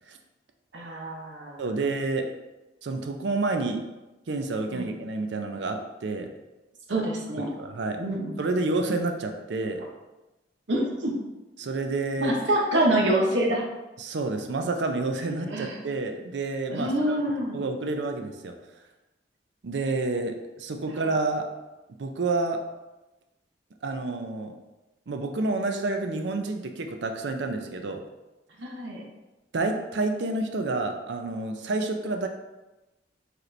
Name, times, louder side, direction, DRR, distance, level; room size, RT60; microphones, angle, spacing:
voice 1, 0.7-1.6 4.7-4.9 6.9-7.5 8.0-8.4 10.7-11.1 12.2-13.7 15.4-15.8 16.7-17.6 20.9-21.0 28.6-29.0, right 1 dB, 90° right, -1 dB, 0.9 m, -26 dB
voice 2, 1.6-2.3 2.8-3.8 4.3-6.3 7.5-8.0 8.4-9.8 11.6-12.4 14.0-17.2 17.5-18.5 19.6-21.5 22.0-22.7 23.8-24.6 25.1-28.0 29.5-32.3, right 3 dB, 70° right, 5 dB, 0.5 m, -29 dB
4.9 x 3.1 x 3.2 m, 1.1 s
head